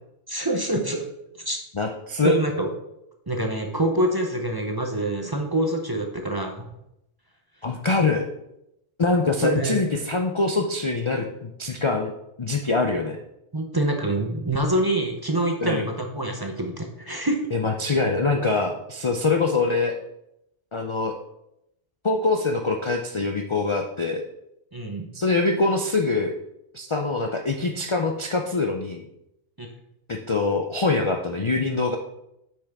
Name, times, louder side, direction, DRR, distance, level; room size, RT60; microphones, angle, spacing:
voice 1, 0.3-1.1 1.5-1.6 2.2-2.7 3.3-6.7 9.2-9.8 12.9-13.0 13.5-17.4 24.7-25.1 29.6-29.7, right 1 dB, 25° right, 2 dB, 0.6 m, -26 dB
voice 2, 1.7-2.3 7.6-8.2 9.0-12.1 12.4-13.2 15.6-15.8 17.5-20.0 20.7-21.1 22.0-24.2 25.1-26.3 26.7-29.0 30.1-32.0, left 3 dB, 40° left, 3 dB, 0.4 m, -24 dB
8.3 x 6.1 x 3.5 m, 0.84 s
omnidirectional pair, 1.2 m